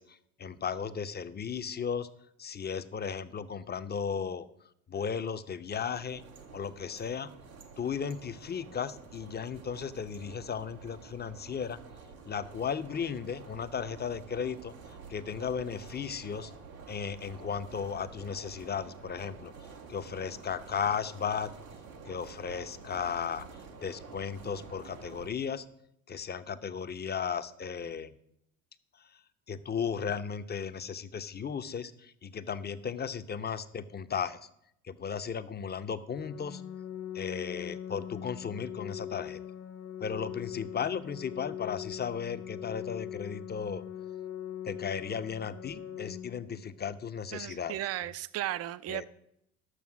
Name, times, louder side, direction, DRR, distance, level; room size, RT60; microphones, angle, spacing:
voice 1, 0.0-2.1 2.4-4.5 4.9-6.2 6.5-7.3 7.8-11.8 12.3-14.7 15.1-16.5 16.9-19.5 19.9-21.5 22.1-23.5 23.8-25.6 26.1-28.1 29.5-34.4 34.8-36.6 37.1-39.4 40.0-43.8 44.6-47.8 48.9-49.1, left 7 dB, 25° left, 0.7 m, -35 dB
sound 1, 5.9-25.3, right 5 dB, 90° right, 1.3 m, -49 dB
Organ, 36.1-47.1, left 10 dB, 45° left, 1.1 m, -41 dB
voice 2, 47.3-49.1, right 13 dB, 35° right, 0.6 m, -35 dB
11.5 x 7.0 x 6.1 m
hypercardioid pair, 60°, 42 cm